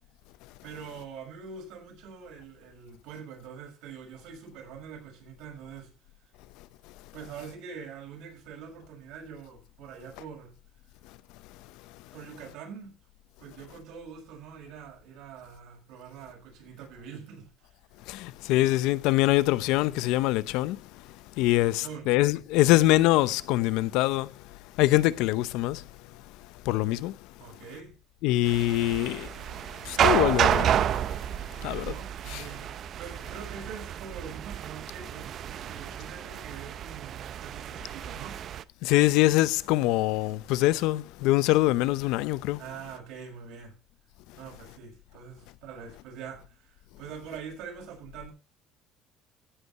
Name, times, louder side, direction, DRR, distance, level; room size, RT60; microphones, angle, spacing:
voice 1, 0.6-5.9 7.1-10.5 12.1-13.0 13.4-17.7 21.6-22.1 27.4-27.9 31.6-32.7 33.0-38.4 42.6-43.8 44.4-48.3, right 6 dB, 75° right, 6.3 m, -44 dB
voice 2, 18.1-20.8 21.4-24.3 24.8-25.8 26.6-27.1 28.2-29.3 29.8-30.8 31.6-31.9 32.3-32.4 38.8-42.6, left 17 dB, 80° left, 0.6 m, -24 dB
sound 1, 28.5-38.6, right 10 dB, 50° right, 0.6 m, -30 dB
16.0 x 5.4 x 5.7 m
cardioid pair, 125°, 0 cm